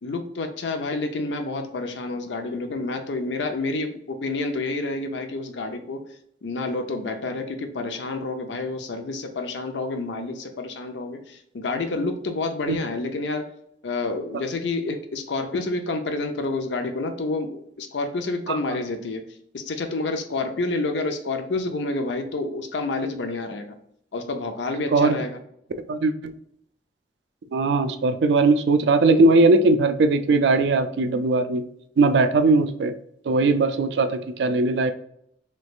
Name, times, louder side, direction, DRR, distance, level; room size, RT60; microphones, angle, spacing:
voice 1, 0.0-6.1 6.4-13.5 13.8-23.8 24.1-25.4, left 3 dB, 75° left, 6 dB, 0.6 m, -29 dB
voice 2, 25.9-26.3 27.5-31.6 32.0-32.9 33.3-34.9, right 3 dB, 70° right, 9 dB, 0.4 m, -19 dB
3.3 x 3.1 x 2.4 m, 0.71 s
head